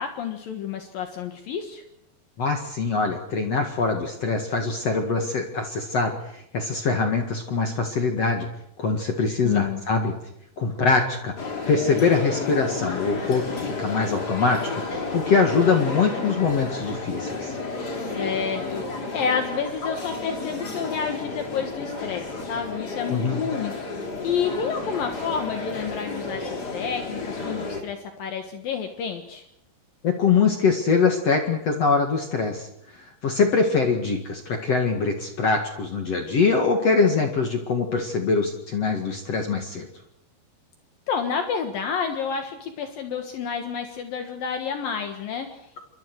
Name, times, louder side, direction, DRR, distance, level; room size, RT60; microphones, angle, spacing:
voice 1, 0.0-1.8 9.4-9.8 17.9-29.4 41.1-45.8, left 6 dB, 65° left, 5 dB, 3.2 m, -30 dB
voice 2, 2.4-8.5 8.8-10.1 10.6-11.3 11.7-14.6 14.9-17.6 23.1-23.4 30.0-32.7 32.9-39.9, left 4 dB, 50° left, 3 dB, 2.5 m, -23 dB
sound 1, 11.4-27.8, left 3 dB, 25° left, 3.0 m, -32 dB
27.5 x 24.0 x 4.8 m, 0.72 s
omnidirectional pair, 4.5 m